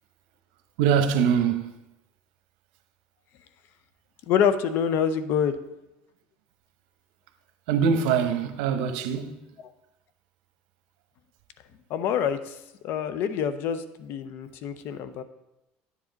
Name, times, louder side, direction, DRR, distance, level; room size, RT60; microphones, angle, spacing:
voice 1, 0.8-1.7 7.7-9.4, right 7 dB, 90° right, 0.9 m, -23 dB
voice 2, 4.3-5.6 11.9-12.6 12.8-15.2, left 8 dB, 60° left, 0.6 m, -26 dB
9.9 x 7.4 x 4.0 m
cardioid pair, 130°, 4 cm